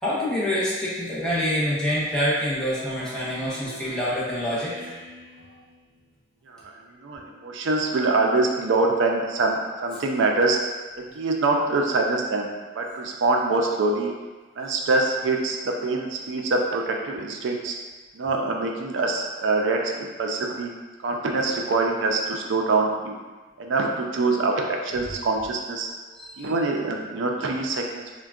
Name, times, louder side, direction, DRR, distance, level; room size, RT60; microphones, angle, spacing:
voice 1, 0.0-4.9 26.2-26.5, equal, 5° left, -10 dB, 0.5 m, -26 dB
Speech synthesizer, 2.7-6.2, right 1 dB, 50° right, 0.7 m, -45 dB
voice 2, 6.5-10.6 11.1-12.5 12.8-14.1 14.6-17.8 18.1-20.7 21.0-23.2 23.6-25.9 26.4-28.0, right 3 dB, 90° right, 1 dB, 0.4 m, -24 dB
3.4 x 2.2 x 2.3 m, 1.3 s
head